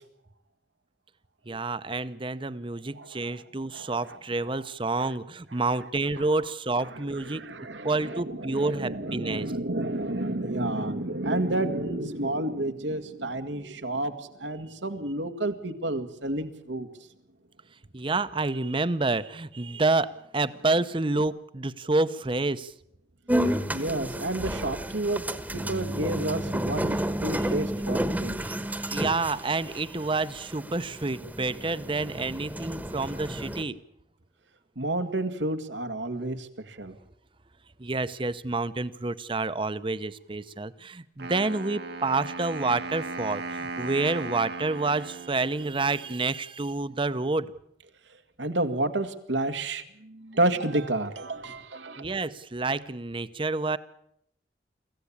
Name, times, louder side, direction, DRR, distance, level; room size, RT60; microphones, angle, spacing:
voice 1, 1.5-7.4 7.8-9.5 17.9-22.7 27.4-27.5 28.4-33.8 37.8-47.5 52.0-53.8, right 3 dB, 30° right, 14 dB, 0.8 m, -29 dB
voice 2, 3.0-3.3 3.7-4.2 5.0-5.1 6.8-16.9 23.7-25.2 25.5-28.4 34.8-37.0 40.5-40.6 48.4-52.1, right 2 dB, 90° right, 9 dB, 1.9 m, -30 dB
sound 1, 23.3-33.6, equal, 10° right, 1.2 m, -31 dB
Wind instrument woodwind instrument, 41.2-46.2, right 3 dB, 65° right, 1.3 m, -37 dB
24.5 x 15.5 x 8.6 m, 0.76 s
head